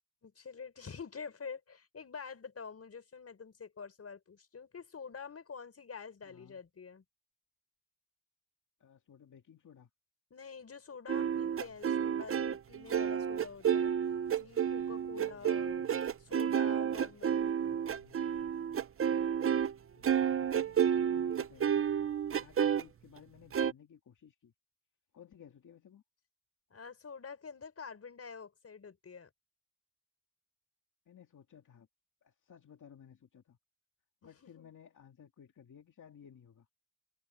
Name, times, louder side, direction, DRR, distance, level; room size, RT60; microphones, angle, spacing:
voice 1, 0.2-7.0 10.3-13.9 14.3-15.7 16.3-17.6 26.7-29.3 34.4-34.7, left 5 dB, 50° left, 5.7 m, -47 dB
voice 2, 6.2-6.6 8.8-9.9 15.1-16.0 17.6-18.4 19.9-21.9 22.4-24.5 25.1-26.0 31.1-31.9 32.2-33.6 34.2-36.7, left 8 dB, 80° left, 2.4 m, -57 dB
sound 1, 11.1-19.7 20.0-22.8 23.5-23.7, right 8 dB, 45° right, 0.6 m, -30 dB
wide cardioid pair, 140°, 30 cm